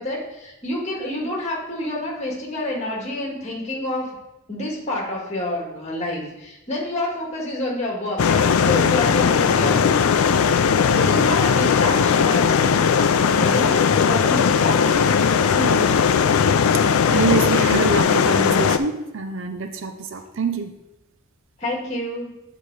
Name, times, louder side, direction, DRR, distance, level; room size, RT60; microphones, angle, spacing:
voice 1, 0.0-4.2 4.5-10.3 11.0-12.9 13.4-15.2 21.6-22.4, left 1 dB, 30° left, -2 dB, 1.8 m, -28 dB
sound 1, 8.2-18.8, left 6 dB, 75° left, 0.4 m, -18 dB
voice 2, 15.5-16.0 16.7-16.8 17.1-20.7, right 4 dB, 60° right, 7 dB, 0.6 m, -25 dB
9.0 x 4.1 x 4.7 m, 0.93 s
head